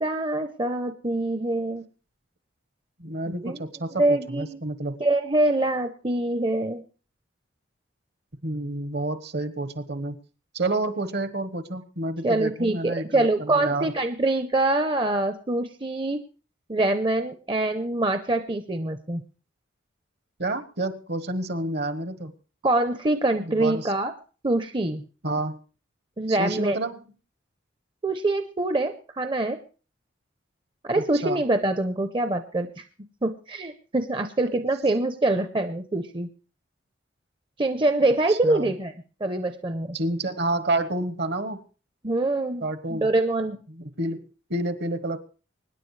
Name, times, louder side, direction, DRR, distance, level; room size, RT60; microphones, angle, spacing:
voice 1, 0.0-1.8 3.3-3.6 4.0-4.6 5.0-6.8 12.2-16.2 16.7-19.2 22.6-24.1 24.4-25.0 26.2-26.8 28.0-29.6 30.8-32.7 33.2-36.3 37.6-38.9 39.2-40.0 42.0-42.6 42.9-43.6, right 2 dB, 25° right, 8 dB, 0.7 m, -24 dB
voice 2, 3.0-5.0 8.4-10.2 10.5-13.9 20.4-22.3 23.4-23.9 25.2-25.6 26.3-27.0 30.9-31.4 38.3-38.7 39.9-41.6 42.6-43.1 43.7-45.2, right 2 dB, 55° right, 11 dB, 1.2 m, -29 dB
24.5 x 10.0 x 3.3 m, 0.36 s
head